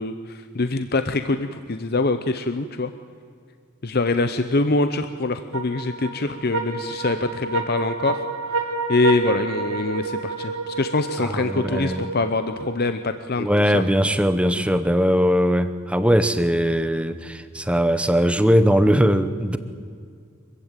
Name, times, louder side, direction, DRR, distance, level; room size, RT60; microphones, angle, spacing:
voice 1, 0.0-2.9 3.8-13.8, left 3 dB, 45° left, 10 dB, 0.8 m, -24 dB
sound 1, 5.5-13.1, right 3 dB, 80° right, 4.1 m, -29 dB
voice 2, 11.2-12.0 13.4-19.6, equal, 5° right, 11 dB, 0.8 m, -20 dB
25.0 x 15.5 x 9.1 m, 2.2 s
head